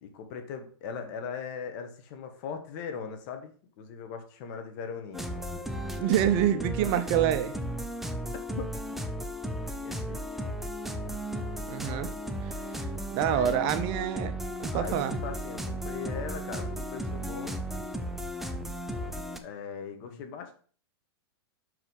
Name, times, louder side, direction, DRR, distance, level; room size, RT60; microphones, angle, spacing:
voice 1, 0.0-5.2 8.5-8.8 9.8-10.2 13.2-13.6 14.7-17.6 19.4-20.5, left 6 dB, 45° left, 1.5 m, -39 dB
sound 1, 5.1-19.4, equal, ahead, 0.6 m, -35 dB
voice 2, 6.0-7.6 11.7-12.1 12.4-12.5 13.1-14.3 14.6-15.2, right 10 dB, 40° right, 0.7 m, -26 dB
5.8 x 4.8 x 5.3 m
hypercardioid pair, 135°, 14 cm